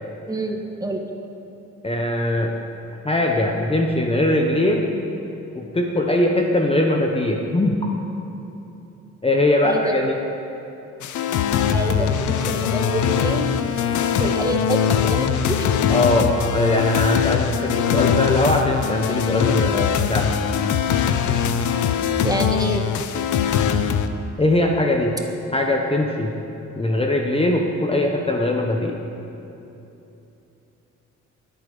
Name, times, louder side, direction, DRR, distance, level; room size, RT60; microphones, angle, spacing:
voice 1, 0.3-1.0 9.6-10.0 11.7-13.6 14.2-15.7 22.2-22.8, right 1 dB, 10° right, 2 dB, 1.7 m, -26 dB
voice 2, 1.8-2.5 3.0-4.9 5.5-7.8 9.2-10.1 15.9-20.3 24.4-25.2 25.5-26.3 26.7-29.0, left 1 dB, 20° left, 1 dB, 1.3 m, -21 dB
sound 1, 11.0-24.1, left 8 dB, 75° left, 0.8 m, -21 dB
22.0 x 8.7 x 5.4 m, 3.0 s
cardioid pair, 90°, 30 cm